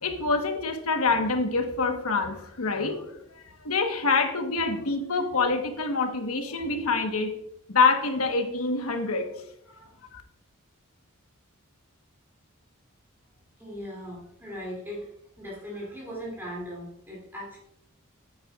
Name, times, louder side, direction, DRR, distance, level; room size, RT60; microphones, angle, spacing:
voice 1, 0.0-3.1 3.6-7.4 7.7-9.3 9.8-9.9, left 4 dB, 85° left, 5 dB, 1.2 m, -26 dB
voice 2, 13.6-15.1 15.4-17.6, equal, 10° right, -5 dB, 2.7 m, -38 dB
9.6 x 9.0 x 2.4 m, 0.79 s
head